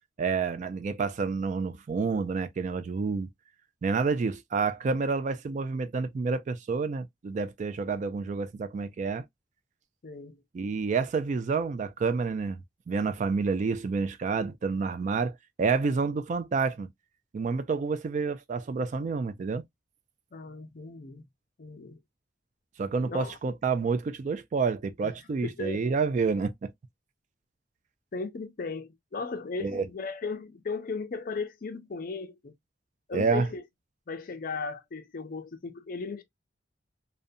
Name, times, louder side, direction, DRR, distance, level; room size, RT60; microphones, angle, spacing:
voice 1, 0.2-3.3 3.8-9.2 10.5-12.6 12.9-16.9 17.3-19.6 22.8-26.7 29.6-29.8 33.1-33.5, right 4 dB, 40° right, 0.3 m, -29 dB
voice 2, 10.0-10.4 20.3-21.3 21.6-22.0 23.0-23.4 25.0-25.8 28.1-32.5 33.1-33.6 34.1-36.2, left 4 dB, 50° left, 0.5 m, -36 dB
2.5 x 2.1 x 2.5 m
head